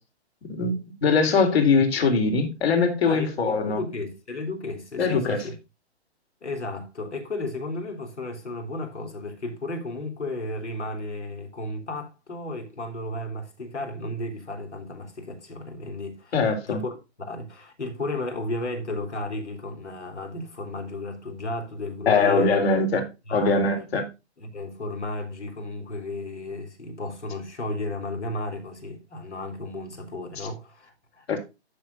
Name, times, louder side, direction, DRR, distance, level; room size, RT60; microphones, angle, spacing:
voice 1, 1.0-3.8 5.0-5.4 16.3-16.8 22.1-23.1 23.3-24.1 31.3-31.4, left 4 dB, 65° left, 3.6 m, -21 dB
voice 2, 3.0-5.6 6.4-16.9 17.3-22.6 23.3-23.7 24.4-31.4, left 2 dB, 85° left, 3.5 m, -34 dB
13.5 x 6.4 x 2.6 m
hypercardioid pair, 135°, 34 cm